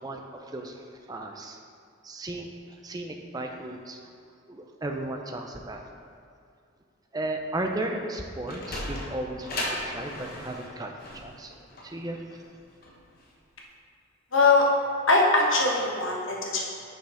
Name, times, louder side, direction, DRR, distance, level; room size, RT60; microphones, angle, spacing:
voice 1, 0.0-1.6 2.0-2.5 2.8-4.0 4.5-5.9 7.1-11.5 11.8-12.2, right 1 dB, 20° right, 3 dB, 0.4 m, -35 dB
Sliding door, 8.2-13.3, left 1 dB, 45° left, 1.1 m, -36 dB
voice 2, 14.3-14.7 15.1-16.6, left 3 dB, 65° left, -1 dB, 1.2 m, -21 dB
6.2 x 5.3 x 4.9 m, 2.4 s
head